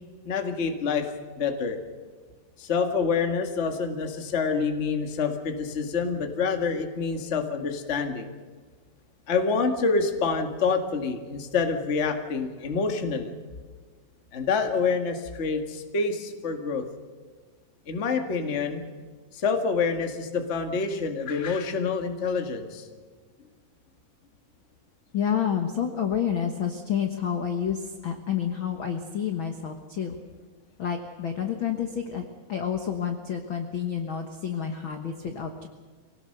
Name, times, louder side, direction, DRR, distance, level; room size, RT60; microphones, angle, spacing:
voice 1, 0.2-1.1 1.4-1.8 2.6-8.3 9.3-13.3 14.3-16.9 17.9-18.8 19.3-22.9, left 5 dB, 30° left, 5 dB, 1.3 m, -27 dB
voice 2, 25.1-30.2 30.8-32.2 32.5-35.7, left 8 dB, 55° left, 5 dB, 1.5 m, -29 dB
24.5 x 18.5 x 6.7 m, 1.5 s
omnidirectional pair, 3.9 m